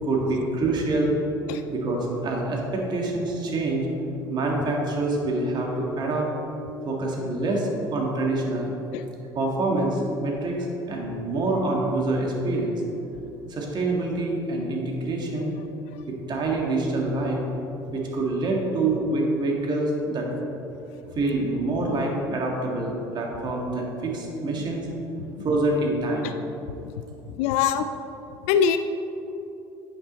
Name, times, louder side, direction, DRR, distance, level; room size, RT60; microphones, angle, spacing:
voice 1, 0.0-1.1 1.7-3.9 4.3-6.3 6.8-8.7 9.3-12.8 13.5-15.5 16.1-17.4 17.9-20.3 21.1-24.9 25.4-26.3, right 2 dB, 40° right, -1 dB, 1.7 m, -26 dB
voice 2, 27.4-27.9 28.5-28.8, left 8 dB, 70° left, 9 dB, 0.4 m, -22 dB
8.5 x 5.8 x 4.1 m, 2.9 s
hypercardioid pair, 75°, 11 cm